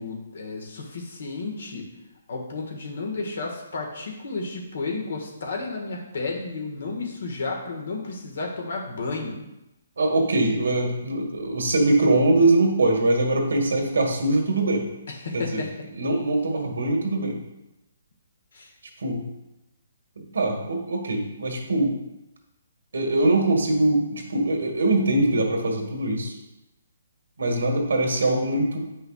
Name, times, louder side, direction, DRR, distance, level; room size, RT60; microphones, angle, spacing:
voice 1, 0.0-1.9 2.3-9.4 15.1-15.9 18.5-18.7, left 3 dB, 70° left, 1 dB, 1.6 m, -32 dB
voice 2, 10.0-14.8 15.3-15.6 15.9-17.4 19.0-19.2 20.2-21.9 22.9-26.3 27.4-28.8, right 2 dB, 80° right, 2 dB, 1.6 m, -22 dB
8.3 x 5.5 x 2.4 m, 0.93 s
hypercardioid pair, 155°, 0 cm